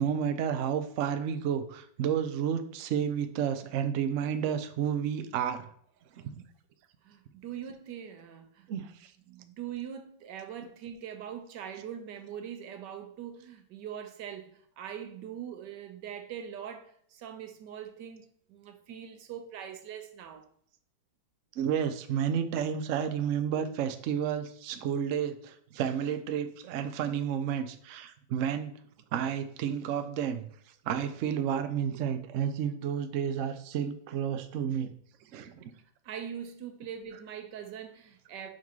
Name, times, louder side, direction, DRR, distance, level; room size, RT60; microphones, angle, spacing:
voice 1, 0.0-5.7 6.1-6.4 8.7-9.1 21.6-28.7 29.1-30.5 30.9-34.9 35.3-35.7, right 8 dB, 90° right, 0.6 m, -31 dB
voice 2, 7.0-8.9 9.3-20.5 36.0-38.5, right 9 dB, 70° right, 1.3 m, -42 dB
5.5 x 4.9 x 4.6 m
omnidirectional pair, 2.1 m